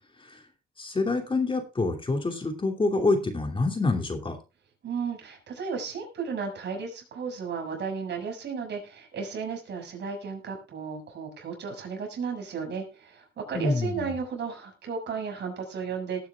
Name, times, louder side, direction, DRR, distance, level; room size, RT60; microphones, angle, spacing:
voice 1, 0.8-4.3 13.5-14.1, left 3 dB, 25° left, 4 dB, 2.8 m, -26 dB
voice 2, 4.8-16.3, right 5 dB, 60° right, 2 dB, 6.3 m, -34 dB
19.0 x 9.4 x 2.4 m, 0.30 s
cardioid pair, 90°, 20 cm